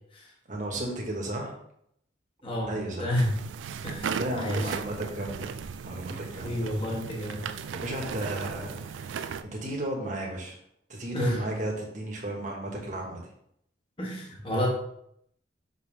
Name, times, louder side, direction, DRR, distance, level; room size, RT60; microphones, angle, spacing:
voice 1, 0.5-1.5 2.7-3.1 4.2-5.5 5.8-6.7 7.7-9.1 9.4-10.5 10.9-13.2, right 1 dB, 40° right, 0 dB, 1.4 m, -34 dB
voice 2, 2.4-3.3 3.8-4.7 6.4-7.5 11.1-11.4 14.0-14.7, equal, 30° left, -2 dB, 1.3 m, -30 dB
sound 1, 3.2-9.4, right 6 dB, 90° right, 0.4 m, -36 dB
6.2 x 5.4 x 3.3 m, 0.72 s
head